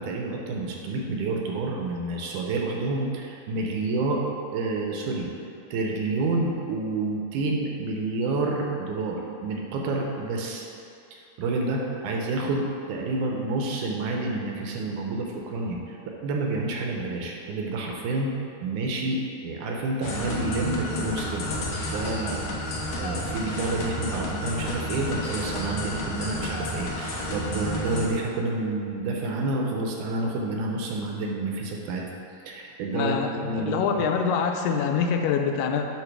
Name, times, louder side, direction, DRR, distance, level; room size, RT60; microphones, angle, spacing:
voice 1, 0.0-4.2 4.5-5.3 5.7-10.7 11.1-15.8 16.1-18.3 18.6-22.5 23.0-32.0 32.5-34.1, right 2 dB, 75° right, 0 dB, 2.2 m, -29 dB
sound 1, 20.0-28.1, left 1 dB, 65° left, 1.6 m, -31 dB
voice 2, 32.9-35.9, left 6 dB, 85° left, 4 dB, 2.3 m, -25 dB
8.2 x 3.8 x 6.0 m, 2.6 s
omnidirectional pair, 3.8 m